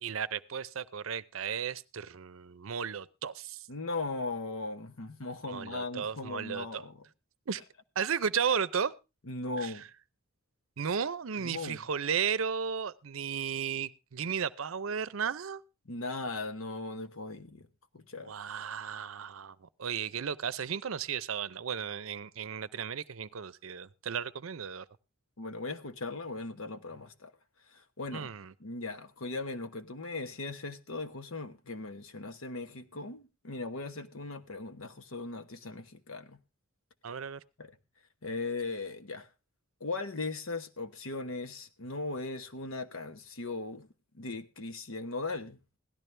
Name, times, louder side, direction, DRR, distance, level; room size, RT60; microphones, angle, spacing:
voice 1, 0.0-3.7 5.5-6.8 7.5-7.6 8.0-8.9 9.6-9.8 10.8-15.6 18.2-24.8 28.1-28.5 37.0-37.4, right 7 dB, 70° right, 0.6 m, -34 dB
voice 2, 3.7-7.0 9.3-9.8 11.4-11.8 15.9-17.7 17.9-18.3 25.4-27.3 27.7-28.3 28.6-36.4 37.6-37.7 38.2-39.3 39.8-43.9 44.1-45.6, left 3 dB, 75° left, 1.1 m, -38 dB
17.0 x 12.5 x 3.3 m
head